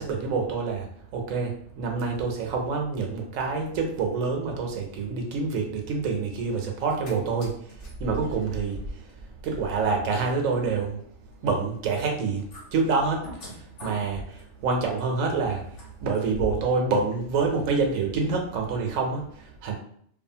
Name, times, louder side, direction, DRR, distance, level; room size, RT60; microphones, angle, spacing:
voice 1, 0.0-11.0 11.4-19.7, right 4 dB, 90° right, 2 dB, 1.0 m, -27 dB
sound 1, 6.8-7.1 7.4-16.8 17.1-17.2, equal, 65° left, 1.3 m, -41 dB
2.6 x 2.4 x 2.7 m, 0.64 s
omnidirectional pair, 1.3 m